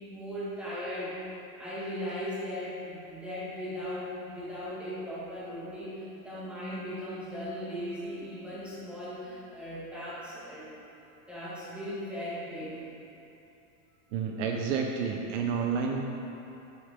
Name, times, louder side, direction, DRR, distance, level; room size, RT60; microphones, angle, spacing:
voice 1, 0.1-1.1 1.6-11.0 11.3-12.8, equal, 5° right, -11 dB, 1.9 m, -38 dB
voice 2, 14.1-16.0, right 6 dB, 65° right, 2 dB, 0.7 m, -30 dB
8.7 x 6.8 x 3.6 m, 2.9 s
supercardioid pair, 170°, 40 cm